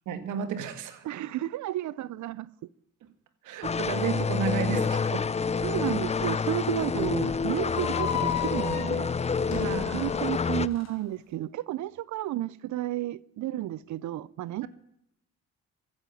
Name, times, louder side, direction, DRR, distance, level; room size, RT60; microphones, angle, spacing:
voice 1, 0.1-1.1 3.4-5.3 9.5-10.1, right 7 dB, 85° right, 1.9 m, -32 dB
voice 2, 1.0-2.5 5.6-9.1 9.9-14.7, right 14 dB, 70° right, 0.6 m, -32 dB
sound 1, 3.6-10.7, left 5 dB, 20° left, 0.5 m, -28 dB
sound 2, 7.7-10.9, left 9 dB, 60° left, 1.8 m, -35 dB
15.5 x 9.2 x 9.1 m
cardioid pair, 90°, 30 cm